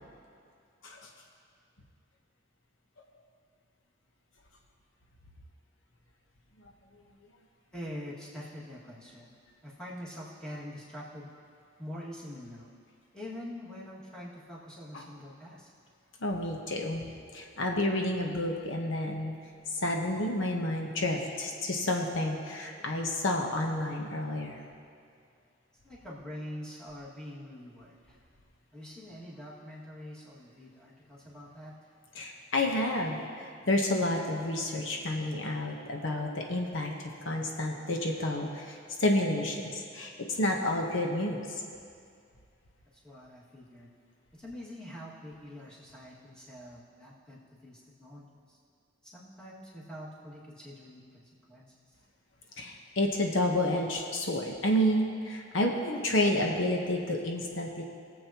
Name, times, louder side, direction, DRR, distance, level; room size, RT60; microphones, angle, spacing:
voice 1, 7.7-9.3 9.6-11.3 11.8-12.7 13.1-15.7 25.8-28.2 28.7-31.7 42.9-43.9 44.3-48.6 49.0-52.0, equal, 5° left, -7 dB, 2.0 m, -45 dB
voice 2, 16.2-17.0 17.3-19.3 19.8-24.6 32.1-41.4 52.6-57.9, left 1 dB, 75° left, 1 dB, 1.0 m, -30 dB
21.0 x 7.7 x 2.9 m, 2.3 s
head